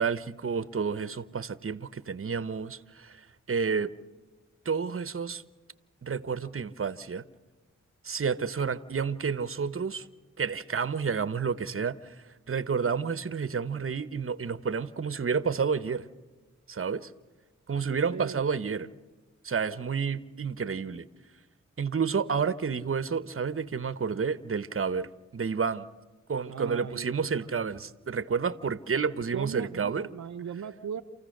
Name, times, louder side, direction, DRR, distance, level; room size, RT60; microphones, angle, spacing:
voice 1, 0.0-3.9 4.6-5.4 6.0-7.2 8.0-10.0 10.4-12.1 12.5-16.1 16.7-17.1 17.7-18.9 19.4-21.1 21.8-25.9 26.3-30.1, right 6 dB, 45° right, 1.0 m, -30 dB
voice 2, 18.1-18.4 26.5-27.1 27.4-27.5 29.3-31.0, right 8 dB, 70° right, 0.8 m, -38 dB
28.5 x 15.0 x 6.6 m
cardioid pair, 45°, 29 cm